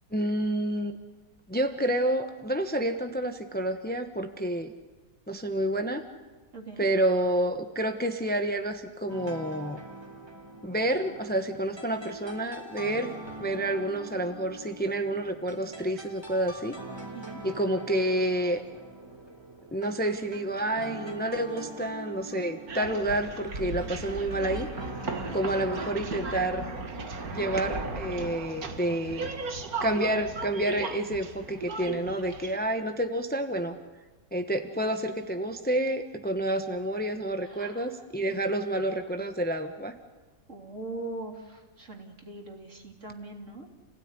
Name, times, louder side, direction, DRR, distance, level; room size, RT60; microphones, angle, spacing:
voice 1, 0.1-1.0 1.5-4.7 5.3-6.0 6.8-9.8 10.6-16.8 17.4-18.6 19.7-24.7 25.3-26.6 27.3-29.3 29.8-33.7 34.3-39.9, right 1 dB, 5° left, 7 dB, 1.1 m, -29 dB
voice 2, 6.5-6.9 17.1-17.4 25.3-25.4 37.4-38.0 38.3-38.5 40.5-43.7, right 2 dB, 55° right, 2 dB, 3.6 m, -41 dB
sound 1, 9.1-26.2, right 1 dB, 15° right, 3.2 m, -44 dB
sound 2, 22.7-32.6, right 3 dB, 85° right, 2.3 m, -36 dB
29.0 x 17.0 x 9.8 m, 1.3 s
omnidirectional pair, 1.5 m